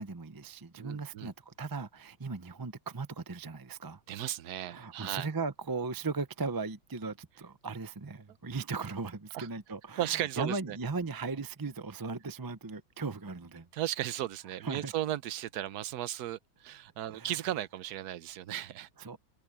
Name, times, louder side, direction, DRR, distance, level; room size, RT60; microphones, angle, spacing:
voice 1, 0.0-4.0 4.6-13.7 14.6-14.9 17.1-17.3 19.0-19.2, right 4 dB, 25° right, 0.4 m, -37 dB
voice 2, 0.8-1.3 4.1-5.3 9.3-9.5 10.0-10.8 13.7-18.9, right 12 dB, 75° right, 1.3 m, -36 dB
omnidirectional pair, 1.7 m